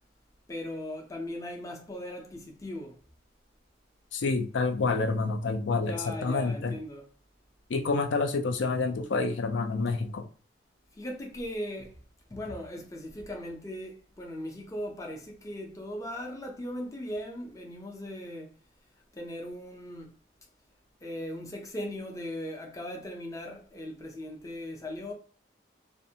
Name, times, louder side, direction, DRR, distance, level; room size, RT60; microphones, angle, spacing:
voice 1, 0.5-2.9 5.8-7.0 11.0-12.0 12.3-18.5 19.1-20.1 21.0-25.1, left 1 dB, 20° left, 0.5 m, -38 dB
voice 2, 4.1-6.8 7.7-10.3, left 3 dB, 80° left, 0.4 m, -28 dB
2.5 x 2.1 x 2.7 m
head